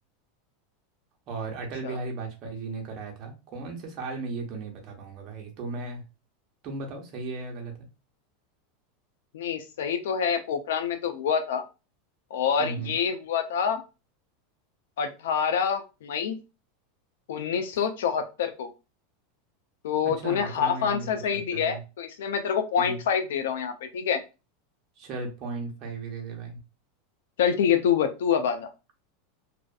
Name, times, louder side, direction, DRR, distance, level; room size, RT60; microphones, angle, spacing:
voice 1, 1.3-6.0 6.6-7.9 12.6-12.9 20.0-21.8 22.8-23.0 25.0-26.6, right 3 dB, 40° right, 1 dB, 0.8 m, -36 dB
voice 2, 9.3-11.6 12.3-13.8 15.0-16.4 17.3-18.7 19.8-24.2 27.4-28.7, left 7 dB, 90° left, 8 dB, 0.4 m, -26 dB
2.5 x 2.4 x 2.2 m, 0.30 s
supercardioid pair, 145°, 0 cm